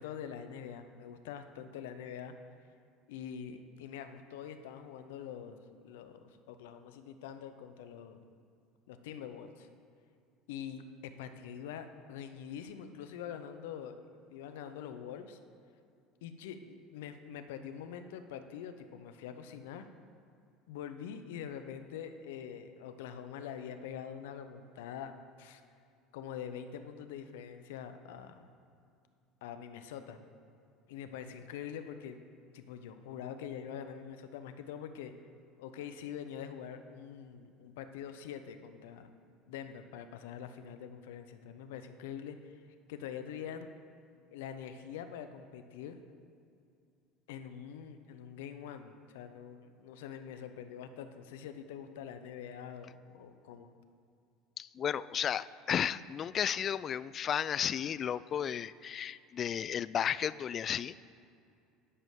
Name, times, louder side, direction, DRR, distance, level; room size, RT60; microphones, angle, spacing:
voice 1, 0.0-2.3 3.1-8.2 8.9-9.7 10.5-14.0 14.3-15.4 16.2-19.9 20.7-25.1 25.4-25.6 26.1-28.4 29.4-30.2 30.9-32.2 32.5-35.1 35.6-39.1 39.5-42.5 42.9-43.7 44.3-46.0 47.3-53.7, left 8 dB, 75° left, 9 dB, 0.7 m, -44 dB
voice 2, 54.6-61.0, left 9 dB, 45° left, 18 dB, 0.3 m, -33 dB
11.0 x 5.1 x 7.4 m, 2.4 s
hypercardioid pair, 70°, 0 cm